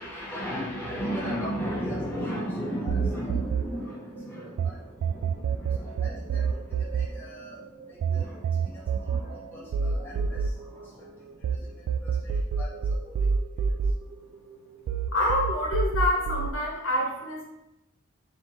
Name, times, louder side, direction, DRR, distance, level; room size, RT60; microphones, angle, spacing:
voice 1, 0.0-7.6 7.9-11.0 11.6-11.7 12.2-12.7 13.1-13.2, equal, 10° left, -7 dB, 0.9 m, -35 dB
sound 1, 2.9-4.7 5.0-11.6 11.9-14.5 14.9-16.5, right 6 dB, 85° right, 0.3 m, -28 dB
voice 2, 15.1-17.4, left 1 dB, 70° left, -1 dB, 0.9 m, -27 dB
3.3 x 2.9 x 4.0 m, 0.88 s
head